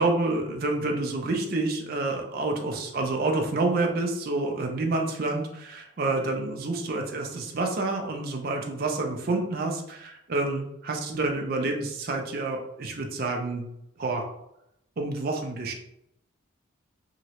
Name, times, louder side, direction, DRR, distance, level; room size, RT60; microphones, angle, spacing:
voice 1, 0.0-13.7 14.0-14.2 15.0-15.7, right 2 dB, 45° right, 2 dB, 0.5 m, -28 dB
3.0 x 2.8 x 2.9 m, 0.80 s
head